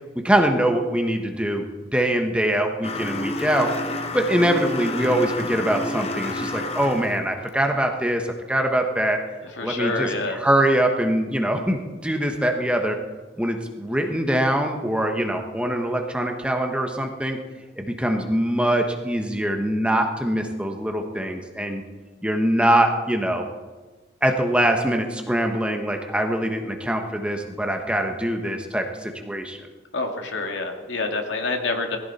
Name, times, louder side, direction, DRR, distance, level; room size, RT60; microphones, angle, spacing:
voice 1, 0.1-1.7 1.9-9.2 9.6-13.0 13.4-17.4 17.8-21.8 22.2-23.5 24.2-29.7, right 1 dB, 5° right, 3 dB, 1.2 m, -23 dB
sound 1, 2.8-7.2, left 2 dB, 30° left, 1.1 m, -29 dB
voice 2, 9.6-10.4 29.9-32.0, left 3 dB, 75° left, 3 dB, 2.3 m, -27 dB
20.5 x 15.0 x 4.3 m, 1.3 s
head